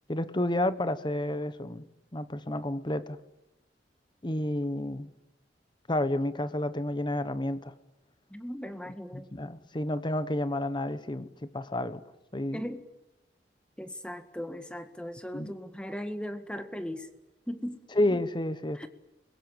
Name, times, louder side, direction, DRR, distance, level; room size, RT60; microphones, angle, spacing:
voice 1, 0.1-1.9 2.1-3.2 4.2-5.1 5.9-7.7 9.1-12.0 12.3-12.6 15.3-15.5 18.0-18.9, left 1 dB, 25° left, 14 dB, 1.1 m, -30 dB
voice 2, 8.3-9.3 12.5-12.9 13.8-17.1 17.5-17.8 18.7-18.9, equal, 5° left, 8 dB, 1.8 m, -38 dB
28.5 x 22.0 x 8.8 m, 0.94 s
head